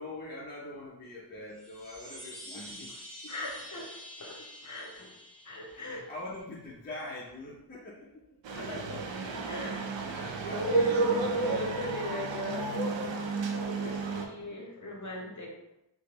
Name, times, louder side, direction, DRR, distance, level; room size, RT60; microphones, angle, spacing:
voice 1, 0.0-2.9 3.2-3.5 5.7-8.4 10.0-11.9, left 2 dB, 20° left, -6 dB, 0.6 m, -43 dB
Chime, 1.5-6.2, equal, 40° right, 1.4 m, -47 dB
voice 2, 3.3-6.1 8.5-9.8 10.4-15.6, left 1 dB, 40° left, -2 dB, 0.9 m, -39 dB
sound 1, 8.4-14.3, right 3 dB, 85° right, 0.5 m, -31 dB
3.3 x 2.2 x 2.9 m, 0.89 s
wide cardioid pair, 80°, 44 cm